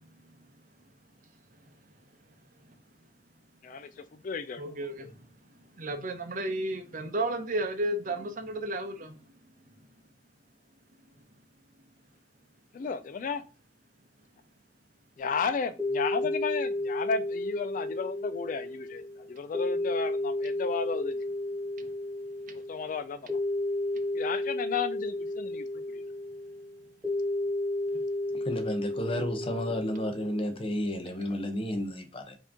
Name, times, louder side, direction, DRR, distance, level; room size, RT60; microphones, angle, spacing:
voice 1, 3.6-4.6 5.0-5.1 12.7-13.4 15.2-19.0 19.3-21.2 22.7-23.4 24.1-26.0, left 5 dB, 45° left, 0.3 m, -33 dB
voice 2, 4.6-5.1 5.8-9.1 31.3-31.4, right 1 dB, 50° right, 0.7 m, -32 dB
sound 1, 15.2-30.6, left 1 dB, 10° right, 1.7 m, -33 dB
voice 3, 28.4-32.4, left 1 dB, 30° left, 0.8 m, -32 dB
4.6 x 2.9 x 3.6 m
head